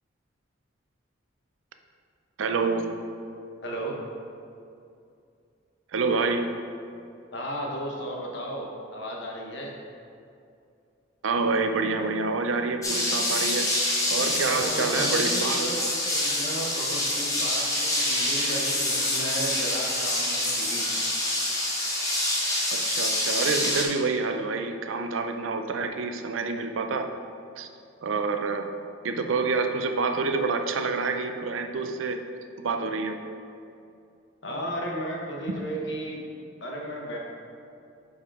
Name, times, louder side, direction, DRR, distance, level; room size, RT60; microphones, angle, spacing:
voice 1, 2.4-2.9 5.9-6.5 11.2-13.7 14.1-15.6 22.7-27.1 27.6-27.7 28.0-28.7 29.0-32.2 32.6-33.2, right 4 dB, 80° right, 6 dB, 0.5 m, -27 dB
voice 2, 3.6-4.0 7.3-9.7 14.4-15.8 16.1-21.1 34.4-36.2 36.6-37.2, right 1 dB, 60° left, -1 dB, 1.1 m, -34 dB
sound 1, 12.8-23.8, left 1 dB, 15° left, 0.9 m, -26 dB
5.5 x 4.8 x 4.8 m, 2.5 s
head